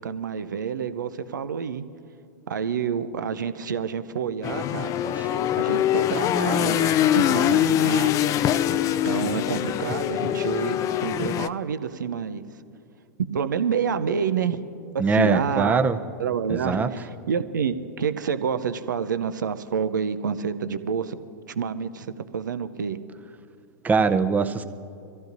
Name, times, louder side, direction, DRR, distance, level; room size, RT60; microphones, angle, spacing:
voice 1, 0.0-1.8 2.5-4.9 5.6-8.4 9.0-12.4 13.2-14.6 14.9-15.8 16.2-21.2 21.6-23.0, right 7 dB, 80° right, 12 dB, 0.6 m, -28 dB
sound 1, 4.4-11.5, left 11 dB, 35° left, 0.4 m, -23 dB
voice 2, 15.0-16.0 16.5-16.9 23.8-24.6, right 4 dB, 15° right, 8 dB, 0.7 m, -22 dB
24.0 x 15.0 x 2.7 m, 2.5 s
hypercardioid pair, 105°, 10 cm